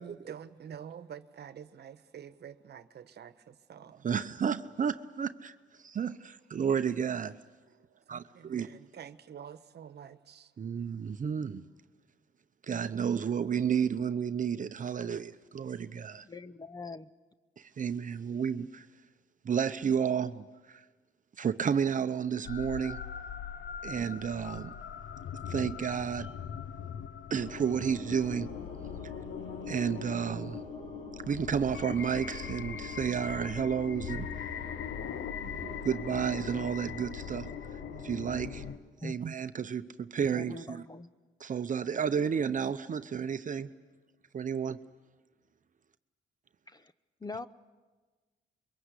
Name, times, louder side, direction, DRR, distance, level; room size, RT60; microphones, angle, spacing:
voice 1, 0.0-4.1 7.7-10.5, right 8 dB, 55° right, 1.2 m, -48 dB
voice 2, 4.0-5.5 5.8-7.4 8.1-8.7 10.6-11.7 12.7-16.2 17.6-18.9 19.4-20.8 21.4-23.0 23.8-24.7 25.5-26.3 27.3-28.5 29.7-30.6 31.3-34.3 35.4-37.5 38.0-38.6 39.0-40.8 41.4-43.7 44.3-44.8, right 7 dB, 40° right, 0.8 m, -31 dB
voice 3, 16.2-17.1 39.0-39.2 40.3-41.1 46.7-46.9 47.2-47.5, left 3 dB, 20° left, 0.8 m, -42 dB
sound 1, 22.5-38.8, left 8 dB, 65° left, 0.9 m, -41 dB
sound 2, 27.3-38.7, left 4 dB, 35° left, 5.1 m, -44 dB
27.0 x 23.0 x 8.2 m
cardioid pair, 90°, 20 cm